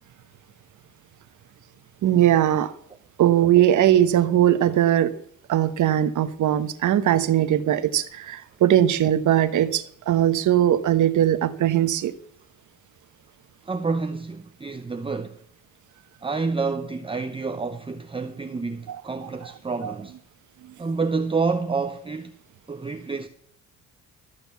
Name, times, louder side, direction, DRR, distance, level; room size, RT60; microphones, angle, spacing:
voice 1, 2.0-2.7 3.2-5.1 5.5-12.1 18.9-19.0 19.8-19.9, right 11 dB, 65° right, 1.1 m, -20 dB
voice 2, 13.6-15.4 16.2-20.2 20.8-22.4 22.7-23.3, right 4 dB, 15° right, 0.7 m, -28 dB
13.5 x 6.9 x 7.0 m
cardioid pair, 115°, 32 cm